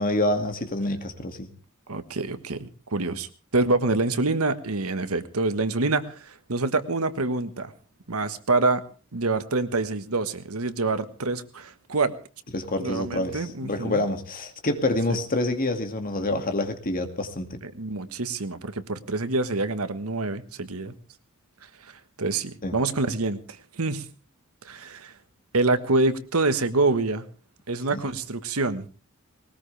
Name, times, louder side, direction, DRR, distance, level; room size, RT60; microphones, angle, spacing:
voice 1, 0.0-1.5 12.5-17.6 22.6-22.8 27.9-28.0, left 2 dB, 40° left, 6 dB, 2.3 m, -27 dB
voice 2, 1.9-7.7 8.1-8.8 9.1-12.1 12.8-14.0 15.1-15.2 17.6-20.9 21.8-24.1 24.6-25.1 25.5-27.3 27.7-28.9, right 3 dB, 85° right, 11 dB, 1.4 m, -26 dB
20.5 x 19.5 x 3.4 m, 0.37 s
head